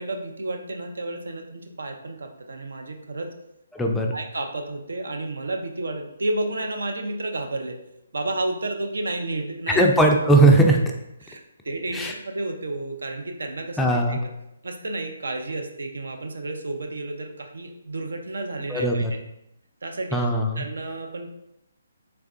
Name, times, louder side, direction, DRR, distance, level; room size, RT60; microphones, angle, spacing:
voice 1, 0.0-3.3 4.1-7.8 8.1-9.9 11.2-14.3 14.6-19.0 19.8-20.2 20.6-21.3, right 2 dB, 75° right, 4 dB, 0.5 m, -31 dB
voice 2, 3.7-4.1 9.7-10.9 11.9-12.1 13.8-14.2 18.7-19.1 20.1-20.6, right 2 dB, 5° left, 0 dB, 0.3 m, -19 dB
3.4 x 3.2 x 2.5 m, 0.84 s
figure-of-eight pair, 145°, 0 cm